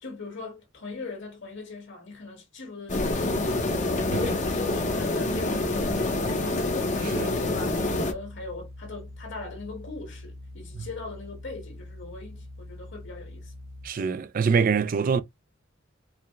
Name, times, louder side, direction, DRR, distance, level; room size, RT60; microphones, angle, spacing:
voice 1, 0.0-13.5, left 3 dB, 60° left, 1.8 m, -40 dB
sound 1, 2.9-8.1, left 2 dB, 35° left, 0.8 m, -26 dB
sound 2, 7.0-13.9, left 1 dB, 80° right, 1.4 m, -44 dB
voice 2, 13.8-15.2, right 5 dB, 45° right, 0.4 m, -24 dB
4.8 x 2.2 x 3.1 m
head